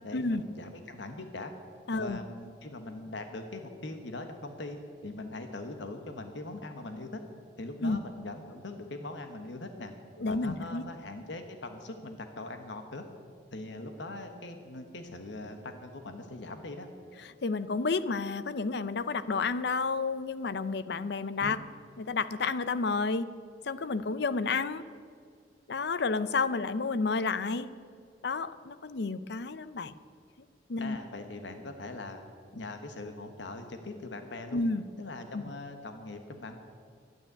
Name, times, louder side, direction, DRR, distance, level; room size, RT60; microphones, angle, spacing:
voice 1, 0.0-1.5 1.9-4.8 5.0-7.2 7.6-9.9 10.3-13.1 13.5-16.9 21.4-21.6 30.8-32.2 32.5-34.6 35.0-36.6, left 2 dB, 80° left, 6 dB, 1.2 m, -41 dB
voice 2, 1.9-2.2 7.8-8.0 10.2-10.8 17.2-21.6 22.0-23.3 23.6-24.8 25.7-27.7 28.2-29.9 30.7-31.0 34.5-34.8 35.3-35.4, left 4 dB, 65° left, 14 dB, 0.6 m, -30 dB
12.0 x 9.6 x 9.6 m, 2.1 s
head